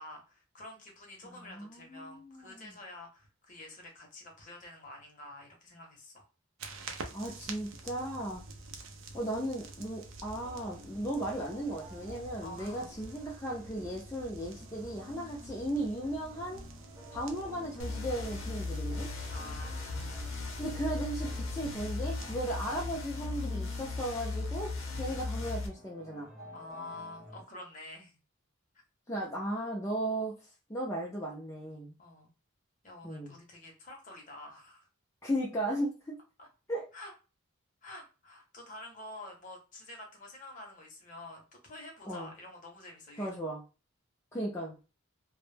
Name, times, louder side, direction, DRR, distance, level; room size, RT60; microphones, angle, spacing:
voice 1, 0.0-6.3 8.6-8.8 12.4-12.9 19.3-20.2 26.5-28.2 28.7-28.8 32.0-32.3 32.8-34.9 36.4-36.5 36.9-37.1 37.8-43.3, left 2 dB, 35° left, 1 dB, 0.7 m, -48 dB
voice 2, 1.2-2.7 7.1-8.4 9.1-16.6 17.1-19.1 20.6-26.3 29.1-30.3 30.7-31.9 33.0-33.3 35.2-36.2 36.7-36.9 42.1-42.3 43.2-43.6 44.3-44.8, right 1 dB, 15° left, -5 dB, 0.4 m, -36 dB
sound 1, 6.6-22.3, right 3 dB, 70° right, 0.4 m, -48 dB
sound 2, 10.4-27.4, left 1 dB, 15° right, 0.7 m, -53 dB
sound 3, 17.8-25.7, left 3 dB, 70° left, 0.7 m, -37 dB
2.1 x 2.0 x 3.2 m, 0.32 s
head